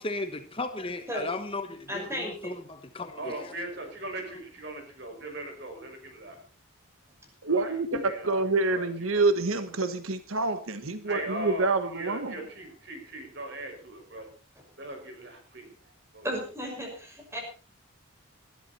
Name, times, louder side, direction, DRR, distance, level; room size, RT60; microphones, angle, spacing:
voice 1, 0.0-3.5, left 2 dB, 25° left, 8 dB, 1.2 m, -36 dB
voice 2, 1.9-2.5 7.9-8.0 16.2-17.4, equal, 15° right, 2 dB, 6.0 m, -34 dB
voice 3, 3.2-6.4 7.5-7.8 8.0-9.2 11.0-14.3 14.8-16.3, right 1 dB, 55° right, 4 dB, 5.9 m, -39 dB
voice 4, 7.4-8.0 8.2-12.4, right 3 dB, 80° right, 10 dB, 1.3 m, -27 dB
19.5 x 13.0 x 4.3 m, 0.38 s
head